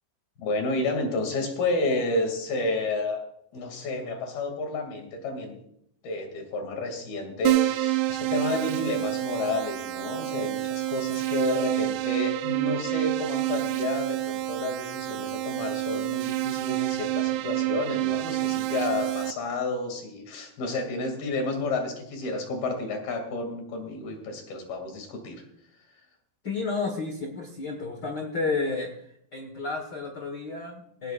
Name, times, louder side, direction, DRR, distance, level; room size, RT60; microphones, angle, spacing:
voice 1, 0.4-3.2 3.5-5.6 6.0-25.4, left 2 dB, 80° left, 4 dB, 4.5 m, -30 dB
Keyboard (musical), 7.5-19.3, right 16 dB, 75° right, 1.9 m, -28 dB
voice 2, 26.4-28.9 29.3-31.1, left 4 dB, 50° left, 3 dB, 1.2 m, -31 dB
18.0 x 18.0 x 2.5 m, 0.73 s
omnidirectional pair, 4.2 m